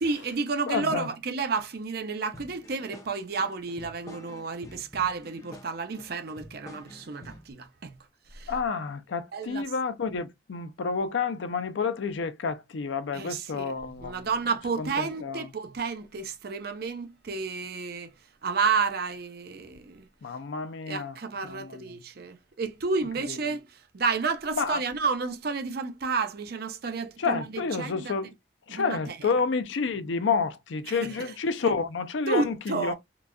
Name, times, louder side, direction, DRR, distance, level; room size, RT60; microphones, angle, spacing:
voice 1, 0.0-8.0 8.3-8.5 9.3-9.6 13.1-18.1 18.4-20.1 20.9-28.1 28.7-29.3 30.9-31.3 32.3-32.9, right 4 dB, 55° right, 0.5 m, -31 dB
voice 2, 0.7-1.1 8.5-14.3 14.8-15.5 20.2-21.2 21.4-21.8 23.3-23.4 24.5-24.8 27.2-28.3 28.7-32.9, left 5 dB, 75° left, 0.5 m, -29 dB
sound 1, 2.3-7.5, left 1 dB, 15° left, 0.6 m, -48 dB
3.9 x 2.3 x 2.2 m
head